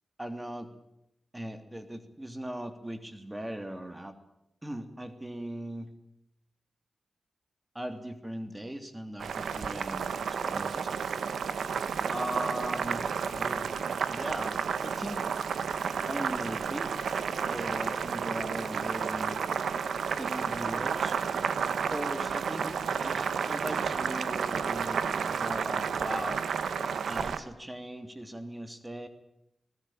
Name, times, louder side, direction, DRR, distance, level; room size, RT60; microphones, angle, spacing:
voice 1, 0.2-0.7 1.3-4.1 4.6-5.9 7.7-10.1 10.4-10.9 12.1-13.1 13.3-13.7 14.1-15.3 16.1-16.9 17.5-19.4 20.2-21.2 21.9-22.8 23.0-26.4 27.1-29.1, right 1 dB, 15° right, 9 dB, 3.0 m, -39 dB
Boiling, 9.2-27.4, right 6 dB, 90° right, 1.6 m, -31 dB
21.5 x 19.0 x 9.1 m, 0.83 s
cardioid pair, 55°, 0 cm